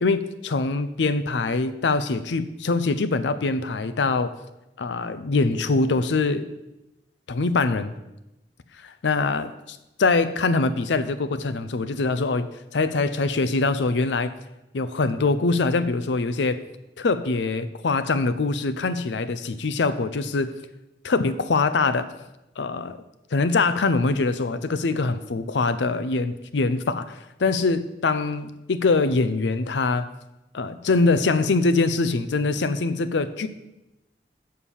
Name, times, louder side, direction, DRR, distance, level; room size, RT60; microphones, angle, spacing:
voice 1, 0.0-4.4 4.8-6.5 7.3-7.9 8.8-12.5 12.7-14.3 14.7-16.6 17.0-20.5 21.0-22.1 22.6-23.0 23.3-30.1 30.5-33.5, left 3 dB, 85° left, 12 dB, 0.5 m, -23 dB
7.0 x 6.6 x 5.6 m, 0.95 s
head